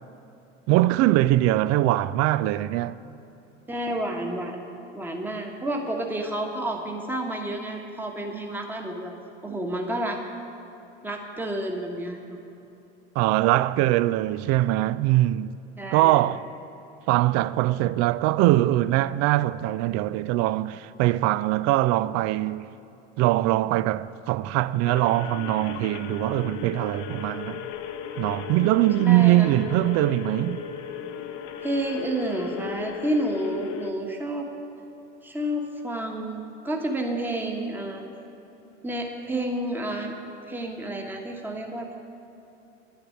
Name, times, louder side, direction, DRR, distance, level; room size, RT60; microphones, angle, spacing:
voice 1, 0.7-3.0 13.2-15.6 15.9-16.5 17.1-22.7 23.2-27.6 28.2-30.7, right 16 dB, 45° right, 0.4 m, -22 dB
voice 2, 3.7-4.6 4.9-9.1 9.4-10.2 11.0-12.4 15.8-16.2 29.0-29.5 31.6-34.5 35.2-38.0 38.8-40.1 40.4-41.9, right 1 dB, 5° right, 1.2 m, -30 dB
sound 1, 24.8-33.9, left 8 dB, 50° left, 0.9 m, -36 dB
10.5 x 7.0 x 8.4 m
hypercardioid pair, 75°, 36 cm